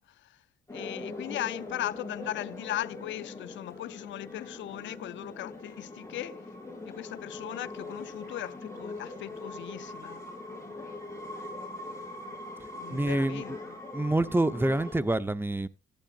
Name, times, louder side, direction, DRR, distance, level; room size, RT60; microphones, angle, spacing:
voice 1, 0.1-0.4 0.7-6.4 6.8-10.2 12.8-13.6, left 14 dB, 70° left, 0.5 m, -38 dB
sound 1, 0.7-15.0, left 2 dB, 15° left, 6.0 m, -42 dB
voice 2, 12.9-13.6 13.9-15.7, right 2 dB, 10° right, 0.9 m, -27 dB
16.0 x 10.5 x 2.5 m
cardioid pair, 90°, 20 cm